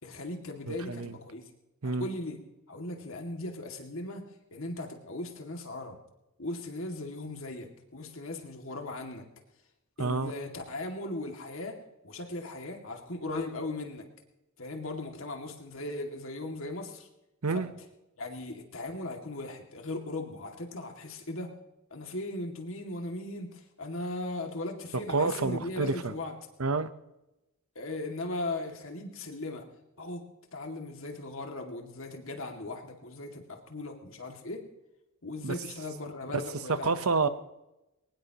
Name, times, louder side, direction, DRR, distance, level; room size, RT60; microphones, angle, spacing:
voice 1, 0.0-1.4 1.8-2.4 2.7-4.2 4.5-6.0 6.4-9.2 10.0-11.8 12.0-14.1 14.6-17.1 17.5-17.6 18.2-21.5 21.9-26.3 27.8-29.6 30.0-30.2 30.5-34.6 35.2-37.3, left 2 dB, 65° left, 3 dB, 2.3 m, -38 dB
voice 2, 0.7-1.1 1.8-2.1 10.0-10.3 17.4-17.7 25.1-26.1 26.6-26.9 35.4-35.5 36.3-36.4 36.7-37.3, right 4 dB, 80° right, 12 dB, 0.9 m, -28 dB
22.0 x 19.0 x 3.0 m, 0.94 s
head